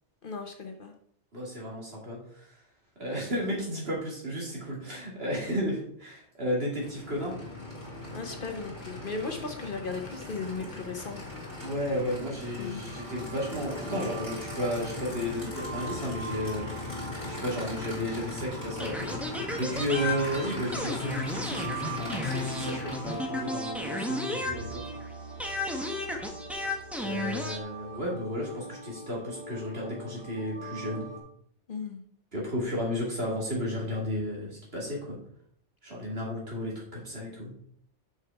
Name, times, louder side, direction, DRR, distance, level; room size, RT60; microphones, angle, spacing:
voice 1, 0.2-0.9 8.1-11.2 12.6-12.8 31.7-32.0, left 4 dB, 50° left, 5 dB, 1.0 m, -36 dB
voice 2, 1.3-2.5 3.0-7.3 11.6-16.7 17.3-24.8 27.0-31.1 32.3-35.2 35.8-37.5, equal, 55° right, -3 dB, 2.9 m, -33 dB
Aircraft / Idling, 6.7-23.6, left 2 dB, 15° left, 2.7 m, -39 dB
sound 1, 12.9-31.2, right 1 dB, 35° right, 2.5 m, -42 dB
sound 2, 18.8-25.1 25.4-27.6, left 2 dB, ahead, 0.9 m, -34 dB
6.4 x 6.0 x 4.6 m, 0.65 s
omnidirectional pair, 1.2 m